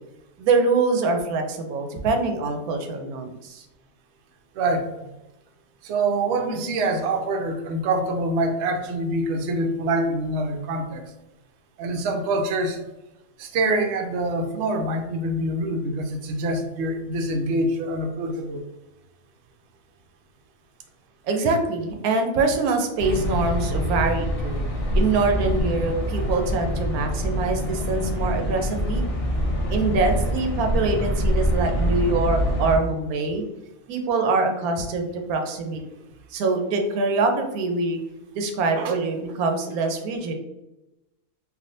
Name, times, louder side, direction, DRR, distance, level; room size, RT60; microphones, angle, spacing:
voice 1, 0.4-3.6 21.3-24.6 24.9-29.0 29.7-33.5 33.9-35.8 36.3-38.0 38.3-40.3, right 3 dB, 85° right, 4 dB, 1.1 m, -24 dB
voice 2, 4.5-5.1 5.8-11.1 11.8-12.8 13.4-18.6 38.8-38.9, right 2 dB, 65° right, 4 dB, 0.7 m, -25 dB
sound 1, 23.0-32.8, equal, 50° left, 0.9 m, -25 dB
3.4 x 2.5 x 2.6 m, 0.97 s
omnidirectional pair, 1.5 m